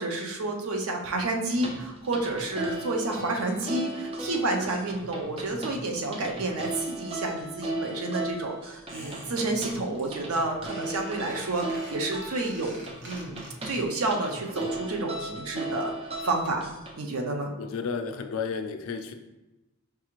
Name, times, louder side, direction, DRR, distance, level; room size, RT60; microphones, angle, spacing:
voice 1, 0.0-12.7 13.0-13.4 13.7-16.6 17.0-17.5, right 2 dB, 85° right, 2 dB, 0.6 m, -30 dB
sound 1, 1.5-16.9, right 1 dB, 25° right, 0.4 m, -36 dB
Squeak, 8.9-9.7 10.0-10.4 10.7-14.1 14.3-14.4, right 1 dB, 55° right, 0.9 m, -47 dB
voice 2, 17.6-19.1, left 5 dB, 70° left, 7 dB, 0.3 m, -32 dB
4.7 x 2.4 x 3.0 m, 1.0 s
head